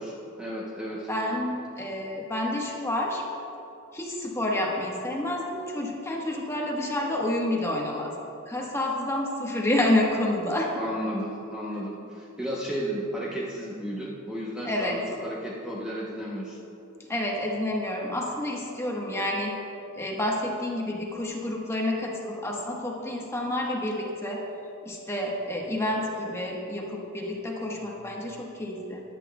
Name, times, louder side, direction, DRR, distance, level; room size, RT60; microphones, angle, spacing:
voice 1, 0.0-1.1 10.7-16.6, equal, 5° right, -5 dB, 0.8 m, -33 dB
voice 2, 1.1-3.2 3.9-8.1 8.5-10.7 14.6-15.0 17.1-19.5 20.0-24.4 24.8-29.0, left 1 dB, 15° left, -1 dB, 1.1 m, -29 dB
14.5 x 10.5 x 2.2 m, 2.7 s
head